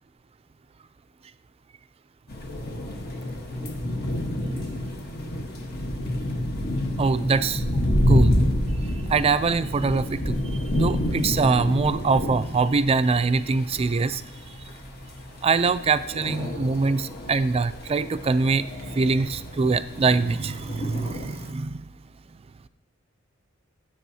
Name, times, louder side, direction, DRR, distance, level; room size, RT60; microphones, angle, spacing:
sound 1, 2.3-21.5, left 1 dB, 50° left, 1.3 m, -28 dB
voice 1, 7.0-7.6 8.1-8.4 9.1-10.4 10.7-14.2 15.4-18.7 18.9-21.8, right 4 dB, 30° right, 13 dB, 0.3 m, -23 dB
16.5 x 7.8 x 2.8 m, 0.87 s
head